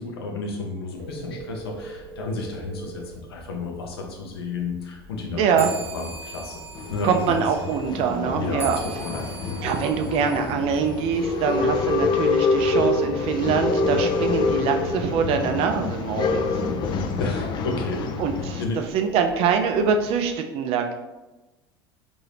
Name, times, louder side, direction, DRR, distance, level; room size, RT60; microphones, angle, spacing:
voice 1, 0.0-5.7 5.9-6.6 6.9-7.4 8.4-9.3 17.2-18.1 18.6-18.9, left 3 dB, 75° left, 1 dB, 0.6 m, -31 dB
Telephone, 0.9-20.3, right 3 dB, 65° right, 0.9 m, -44 dB
voice 2, 5.4-5.7 7.0-8.8 9.6-16.4 18.2-18.6 18.9-20.9, right 6 dB, 50° right, 5 dB, 0.4 m, -24 dB
sound 1, 5.5-11.4, right 4 dB, 20° right, 1.0 m, -41 dB
Male speech man speaking / Chatter / Rattle, 6.7-18.7, left 3 dB, 35° left, 0.4 m, -26 dB
2.7 x 2.6 x 3.3 m, 1.1 s
figure-of-eight pair, 70°, 13 cm